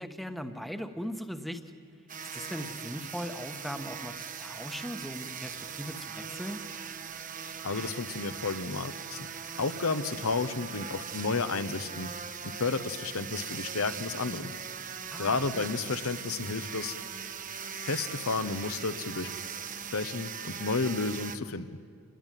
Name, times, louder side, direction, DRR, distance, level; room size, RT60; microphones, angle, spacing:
voice 1, 0.0-1.6 2.3-6.6 15.1-15.7, equal, ahead, 8 dB, 1.2 m, -39 dB
sound 1, 2.1-21.4, right 7 dB, 35° right, 1.1 m, -40 dB
voice 2, 7.6-9.3 9.6-12.1 12.4-14.5 15.2-17.0 17.8-19.3 19.9-21.7, left 4 dB, 65° left, 11 dB, 1.0 m, -32 dB
28.0 x 21.0 x 9.2 m, 2.2 s
head